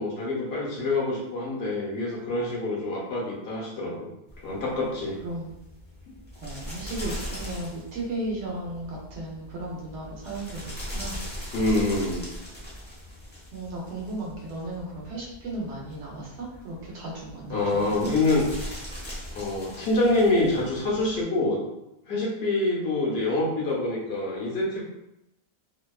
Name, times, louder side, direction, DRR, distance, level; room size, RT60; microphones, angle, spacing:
voice 1, 0.0-4.1 4.4-5.2 11.5-12.2 17.5-18.8 19.3-21.6 22.1-24.8, left 2 dB, 65° left, -4 dB, 1.0 m, -26 dB
sound 1, 4.3-21.2, equal, 10° left, 0.6 m, -40 dB
voice 2, 6.4-11.2 13.5-18.1, right 2 dB, 85° right, -3 dB, 1.0 m, -35 dB
2.7 x 2.1 x 2.3 m, 0.89 s
omnidirectional pair, 1.1 m